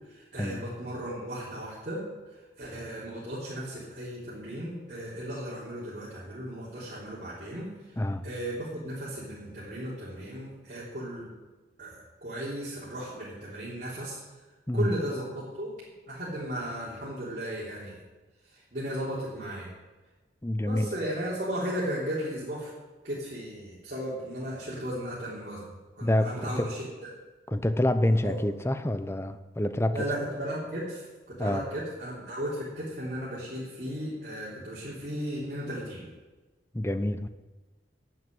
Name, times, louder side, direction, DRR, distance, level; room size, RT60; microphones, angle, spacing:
voice 1, 0.1-2.0 2.6-7.7 8.2-11.3 11.8-14.2 14.7-15.7 16.1-18.0 18.7-19.7 20.6-22.7 23.0-27.1 28.2-28.4 29.9-36.1, equal, 45° right, -9 dB, 3.8 m, -35 dB
voice 2, 20.4-20.9 26.0-26.7 27.5-30.1 31.4-31.6 36.7-37.3, left 1 dB, 15° left, 11 dB, 0.6 m, -27 dB
11.5 x 7.6 x 9.5 m, 1.2 s
head